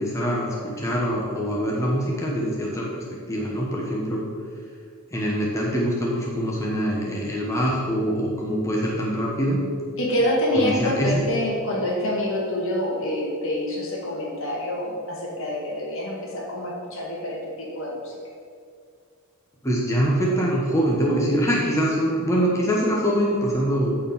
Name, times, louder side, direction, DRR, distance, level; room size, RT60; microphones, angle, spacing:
voice 1, 0.0-2.9 3.3-4.2 5.1-9.6 10.5-11.2 19.6-24.0, equal, 15° left, -4 dB, 1.1 m, -24 dB
voice 2, 10.0-18.1, left 1 dB, 60° left, -2 dB, 2.1 m, -26 dB
9.0 x 4.5 x 7.1 m, 2.2 s
head